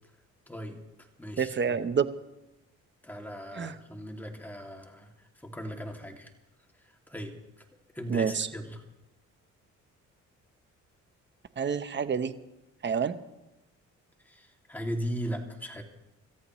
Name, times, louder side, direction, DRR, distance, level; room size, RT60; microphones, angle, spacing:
voice 1, 0.5-1.8 3.0-5.1 5.4-6.3 7.1-7.6 7.9-8.8 14.2-15.8, equal, 5° left, 2 dB, 2.4 m, -38 dB
voice 2, 1.4-2.1 3.6-3.7 8.1-8.5 11.6-12.3 12.8-13.2, right 6 dB, 40° right, 11 dB, 0.9 m, -28 dB
27.0 x 14.0 x 3.1 m, 0.97 s
cardioid pair, 90°, 30 cm